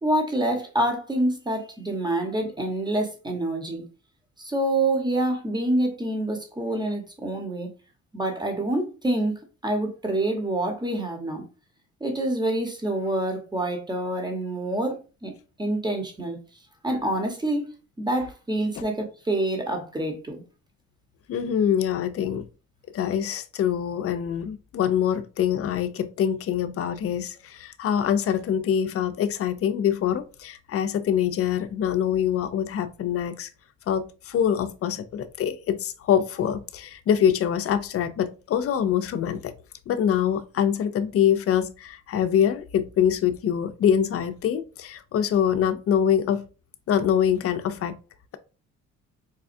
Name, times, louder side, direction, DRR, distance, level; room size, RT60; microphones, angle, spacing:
voice 1, 0.0-3.8 4.4-7.7 8.1-11.4 12.0-15.3 15.6-16.4 16.8-17.7 18.0-20.4, right 1 dB, 15° right, 1.0 m, -27 dB
voice 2, 21.3-22.4 22.9-33.5 33.9-39.5 39.9-46.4 46.9-48.0, left 9 dB, 50° left, 0.5 m, -24 dB
4.1 x 2.3 x 2.5 m
cardioid pair, 90°, 30 cm